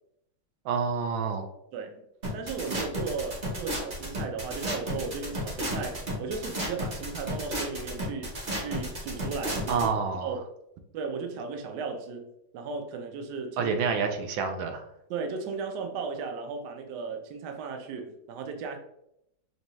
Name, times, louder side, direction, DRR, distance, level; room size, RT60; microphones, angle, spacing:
voice 1, 0.6-1.5 9.7-10.4 13.6-14.8, right 5 dB, 85° right, 1.4 m, -28 dB
voice 2, 1.7-2.0 2.3-9.9 10.2-10.4 10.9-12.3 12.5-13.8 15.1-18.8, right 5 dB, 70° right, 1.1 m, -36 dB
sound 1, 2.2-9.9, equal, 40° right, 0.8 m, -33 dB
5.3 x 2.3 x 3.0 m
omnidirectional pair, 2.1 m